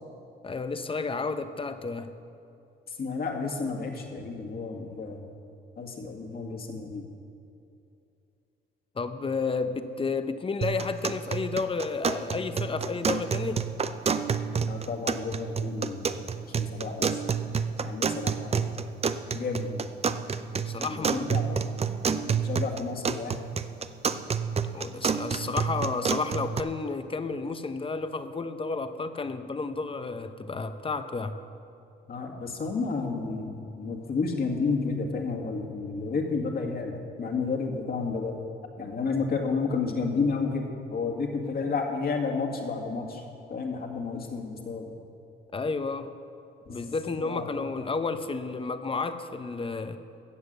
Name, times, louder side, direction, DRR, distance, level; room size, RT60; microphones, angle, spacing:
voice 1, 0.4-2.1 9.0-13.6 20.7-21.3 24.7-31.4 45.5-46.1 46.7-50.0, left 4 dB, 25° left, 9 dB, 0.9 m, -31 dB
voice 2, 2.9-5.3 5.8-7.1 14.6-17.2 17.8-18.8 19.3-19.9 20.8-21.7 22.1-23.4 32.1-38.4 38.8-43.2 43.5-44.9 46.7-46.9 47.2-47.5, left 4 dB, 50° left, 2 dB, 2.1 m, -31 dB
sound 1, 10.6-26.6, right 6 dB, 30° right, 0.6 m, -29 dB
15.0 x 8.2 x 6.8 m, 2.7 s
cardioid pair, 90°, 20 cm